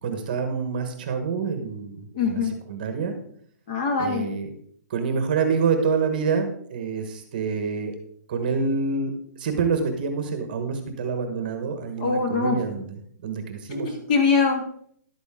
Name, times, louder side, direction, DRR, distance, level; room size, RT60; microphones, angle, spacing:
voice 1, 0.0-2.4 2.7-3.2 4.0-4.5 4.9-7.9 8.3-9.1 9.4-12.9 13.2-13.9, right 5 dB, 30° right, 7 dB, 1.3 m, -27 dB
voice 2, 2.1-2.5 3.7-4.3 12.0-12.6 13.7-14.6, left 4 dB, 25° left, 3 dB, 1.7 m, -23 dB
11.5 x 8.8 x 3.7 m, 0.62 s
hypercardioid pair, 180°, 9 cm